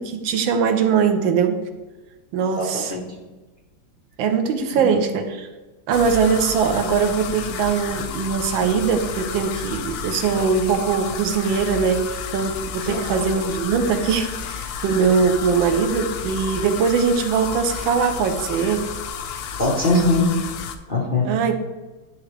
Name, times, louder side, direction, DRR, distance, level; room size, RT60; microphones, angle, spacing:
voice 1, 0.0-1.6 2.3-2.9 4.2-5.5 5.9-18.8 21.2-21.5, right 6 dB, 80° right, 6 dB, 1.4 m, -21 dB
voice 2, 2.5-3.0 4.7-4.8 12.8-13.2 19.6-20.3 20.9-21.3, left 2 dB, 40° left, -4 dB, 0.7 m, -21 dB
sound 1, 5.9-20.8, left 7 dB, 75° left, 0.9 m, -31 dB
9.9 x 3.6 x 3.2 m, 1.2 s
omnidirectional pair, 2.2 m